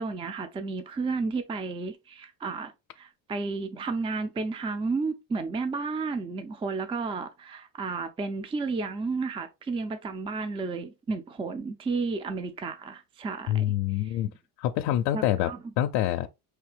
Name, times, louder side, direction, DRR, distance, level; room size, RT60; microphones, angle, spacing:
voice 1, 0.0-14.2 15.1-15.6, right 4 dB, 15° right, 0.4 m, -32 dB
voice 2, 13.5-14.3 14.6-15.5 15.8-16.3, left 12 dB, 90° left, 0.5 m, -26 dB
4.6 x 3.3 x 3.3 m
cardioid pair, 125°, 39 cm